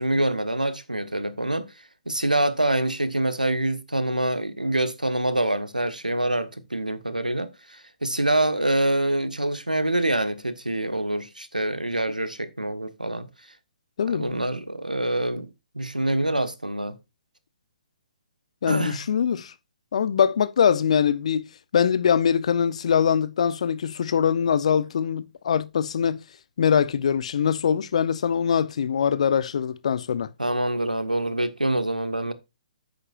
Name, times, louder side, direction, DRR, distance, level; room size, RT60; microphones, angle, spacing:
voice 1, 0.0-1.7 2.1-13.3 14.1-15.5 15.7-17.0 18.7-19.0 30.4-32.3, right 1 dB, 90° right, 1.4 m, -25 dB
voice 2, 14.0-14.3 18.6-19.5 19.9-21.5 21.7-26.2 26.6-30.3, left 7 dB, 55° left, 0.8 m, -23 dB
10.5 x 8.4 x 2.5 m
figure-of-eight pair, 130°, 4 cm